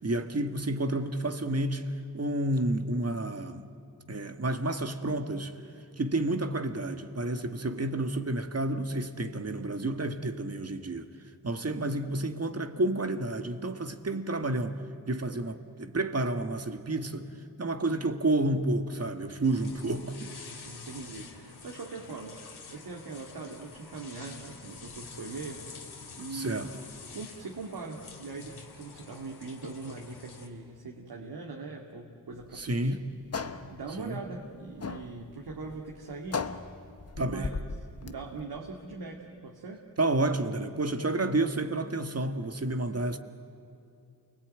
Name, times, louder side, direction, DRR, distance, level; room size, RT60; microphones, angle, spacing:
voice 1, 0.0-1.9 2.1-3.7 4.1-5.5 6.0-11.1 11.4-14.8 15.1-17.3 17.6-20.3 26.3-26.7 32.5-33.0 34.0-34.2 37.2-37.5 40.0-43.2, right 2 dB, 40° right, 1.8 m, -30 dB
sound 1, 19.4-30.5, left 4 dB, 75° left, 2.7 m, -48 dB
voice 2, 19.8-20.2 20.6-22.4 22.7-25.7 26.1-26.7 27.1-33.0 33.7-36.5 37.2-37.6 38.0-39.8, right 3 dB, 70° right, 2.3 m, -41 dB
sound 2, 32.3-38.5, left 4 dB, 40° left, 1.2 m, -38 dB
28.5 x 20.5 x 9.2 m
cardioid pair, 60°, 39 cm